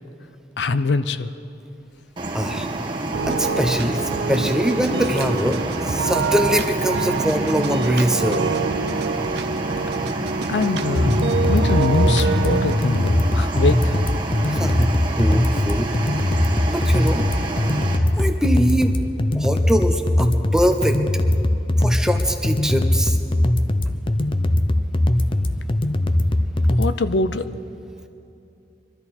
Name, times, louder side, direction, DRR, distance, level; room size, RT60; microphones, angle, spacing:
voice 1, 0.6-1.3 10.5-11.2 11.5-14.1 14.5-14.7 26.8-27.5, left 3 dB, 80° left, 12 dB, 0.5 m, -23 dB
sound 1, 2.2-18.0, right 2 dB, 30° right, 1.3 m, -29 dB
voice 2, 2.3-2.7 3.2-8.5 14.5-14.9 15.2-15.9 16.7-17.2 18.2-18.9 19.3-21.0 21.8-23.2 25.6-25.7, equal, 5° right, 5 dB, 0.8 m, -22 dB
sound 2, 3.1-12.8, right 4 dB, 70° right, 0.5 m, -26 dB
sound 3, 10.9-26.9, left 1 dB, 30° left, 0.6 m, -20 dB
24.0 x 13.0 x 4.3 m, 2.7 s
head